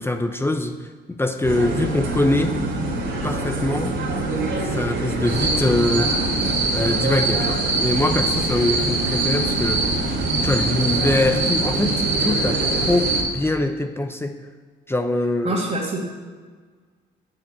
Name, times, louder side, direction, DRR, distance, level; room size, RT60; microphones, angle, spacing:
voice 1, 0.0-2.6 3.2-4.0 4.7-6.2 6.7-9.9 10.4-14.4 14.9-15.6, left 2 dB, 10° left, 6 dB, 0.8 m, -23 dB
sound 1, 1.4-13.2, right 2 dB, 70° right, 3.2 m, -26 dB
sound 2, 5.3-13.2, right 3 dB, 85° right, 4.6 m, -24 dB
voice 2, 15.4-16.0, right 2 dB, 40° right, -5 dB, 2.5 m, -25 dB
9.3 x 8.2 x 8.7 m, 1.5 s
cardioid pair, 90°, 20 cm